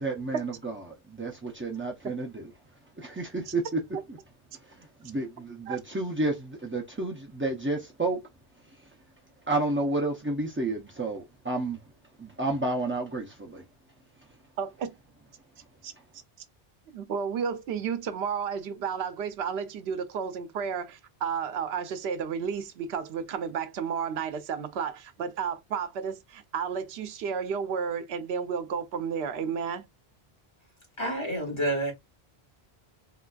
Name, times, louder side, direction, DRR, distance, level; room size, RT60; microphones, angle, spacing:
voice 1, 0.0-2.5 3.0-3.8 4.5-8.2 8.6-8.9 9.5-11.8 12.2-13.6, right 2 dB, 20° right, 0.3 m, -31 dB
voice 2, 14.6-14.9 15.8-15.9 16.9-29.9, right 6 dB, 80° right, 0.8 m, -32 dB
voice 3, 31.0-31.9, right 1 dB, 25° left, 1.3 m, -28 dB
3.8 x 2.4 x 2.2 m
omnidirectional pair, 1.1 m